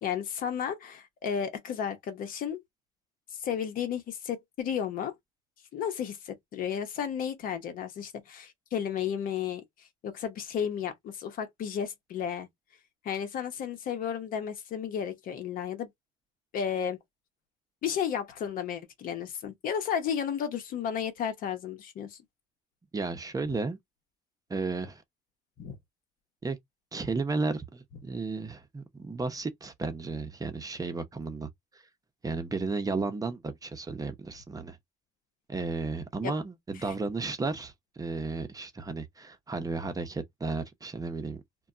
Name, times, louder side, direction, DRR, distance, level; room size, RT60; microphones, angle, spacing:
voice 1, 0.0-2.6 3.3-5.1 5.7-9.6 10.0-12.5 13.0-15.9 16.5-17.0 17.8-22.2 25.6-25.8 36.2-36.3, left 8 dB, 60° left, 0.9 m, -33 dB
voice 2, 22.9-23.8 24.5-25.0 26.4-26.6 26.9-31.8 32.2-34.8 35.5-41.4, right 3 dB, 20° right, 0.8 m, -33 dB
2.3 x 2.1 x 3.8 m
supercardioid pair, 75°, 16 cm